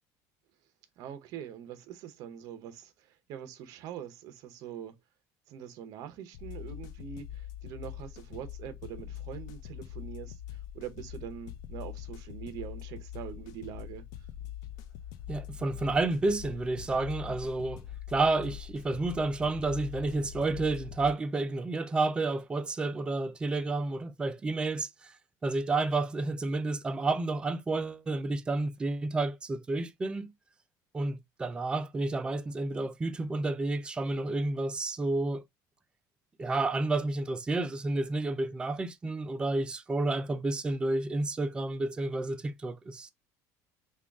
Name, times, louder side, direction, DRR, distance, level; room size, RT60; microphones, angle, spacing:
voice 1, 1.0-4.9 5.5-14.0, right 9 dB, 55° right, 0.7 m, -43 dB
sound 1, 6.3-21.1, left 11 dB, 60° left, 0.4 m, -43 dB
voice 2, 15.3-25.1 25.4-30.3 30.9-35.4 36.4-43.1, right 2 dB, 15° right, 0.3 m, -30 dB
3.5 x 2.3 x 3.5 m
cardioid pair, 175°, 7 cm